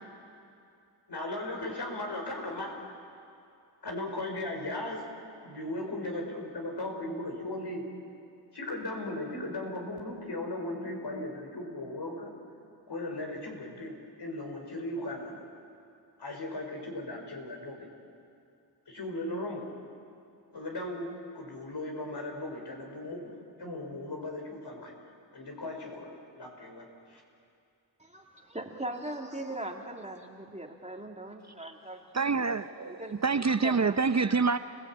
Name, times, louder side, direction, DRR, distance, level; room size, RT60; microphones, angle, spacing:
voice 1, 1.1-2.8 3.8-5.0 5.4-7.9 8.5-12.3 12.9-15.4 16.2-17.9 18.9-19.8 20.5-24.9 25.3-27.2, left 1 dB, 65° left, 1 dB, 5.4 m, -37 dB
voice 2, 28.0-32.4 33.0-33.2 33.6-34.0, right 1 dB, 15° right, 1 dB, 2.5 m, -40 dB
voice 3, 32.1-34.6, right 4 dB, 40° right, 10 dB, 0.7 m, -27 dB
30.0 x 18.0 x 8.7 m, 2.5 s
cardioid pair, 60°, 44 cm